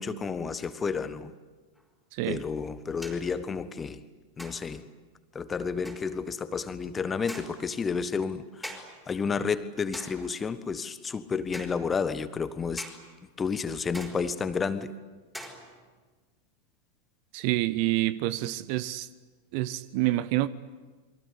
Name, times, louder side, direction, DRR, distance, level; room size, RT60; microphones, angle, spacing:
voice 1, 0.0-1.3 2.3-4.0 4.4-4.8 5.3-8.8 9.1-12.8 13.4-14.9, left 5 dB, 15° left, 1.4 m, -31 dB
sound 1, 1.8-1.9 3.0-3.4 4.4-4.9 5.8-6.1 7.3-7.7 8.6-9.1 9.9-10.4 11.5-11.8 12.8-13.1 13.9-14.5 15.3-15.9, equal, ahead, 4.9 m, -43 dB
voice 2, 2.1-2.4 17.3-19.1 19.5-20.5, right 16 dB, 45° right, 1.0 m, -27 dB
29.0 x 23.5 x 8.4 m
figure-of-eight pair, 90°, 0 cm